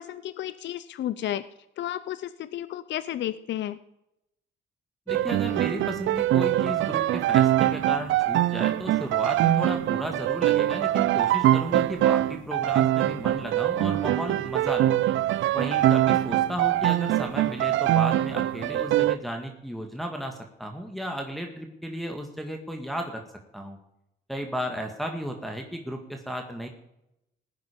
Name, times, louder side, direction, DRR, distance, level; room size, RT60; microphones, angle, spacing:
voice 1, 0.0-1.4 1.8-3.8, left 12 dB, 65° left, 15 dB, 0.6 m, -32 dB
voice 2, 5.1-15.0 15.5-23.2 23.5-23.8 24.3-26.7, equal, ahead, 3 dB, 1.9 m, -34 dB
sound 1, 5.1-19.2, right 13 dB, 75° right, 0.5 m, -23 dB
17.0 x 9.6 x 5.2 m, 0.84 s
cardioid pair, 90°, 20 cm